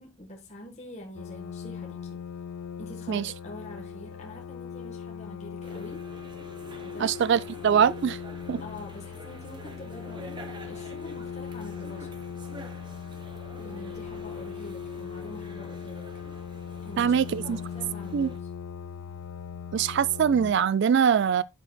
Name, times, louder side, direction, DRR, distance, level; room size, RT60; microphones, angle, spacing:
voice 1, 0.0-2.3 2.8-6.0 6.8-7.2 8.6-12.2 13.6-16.1 16.8-17.1 17.4-18.5, left 1 dB, 30° left, 1.3 m, -45 dB
sound 1, 1.1-20.5, left 7 dB, 70° left, 0.3 m, -39 dB
sound 2, 5.6-18.4, right 2 dB, 20° right, 0.8 m, -48 dB
voice 2, 7.0-8.2 8.5-8.6 17.0-17.6 18.1-18.3 19.7-21.4, right 7 dB, 55° right, 0.3 m, -23 dB
9.0 x 6.4 x 2.2 m
head